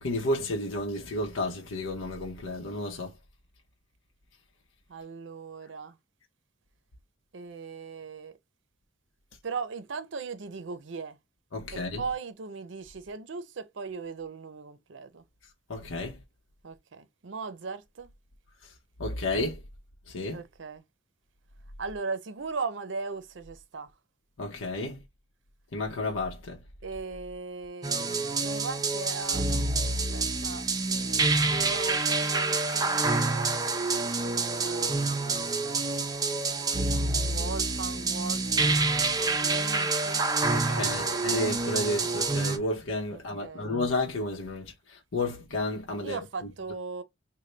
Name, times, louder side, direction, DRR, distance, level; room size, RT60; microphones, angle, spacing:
voice 1, 0.0-3.1 11.5-12.0 15.7-16.2 19.0-19.6 20.1-20.4 24.4-25.0 25.7-26.6 40.5-46.2, left 2 dB, 90° left, 0.8 m, -31 dB
voice 2, 4.9-6.0 7.3-8.4 9.4-11.2 11.7-15.2 16.6-18.1 20.3-20.8 21.8-23.9 26.8-29.5 29.8-33.5 34.2-35.5 36.7-40.2 40.7-41.2 43.1-43.7 46.0-47.0, right 4 dB, 70° right, 0.6 m, -39 dB
sound 1, 27.8-42.6, right 3 dB, 20° right, 0.4 m, -27 dB
3.3 x 2.2 x 3.8 m
head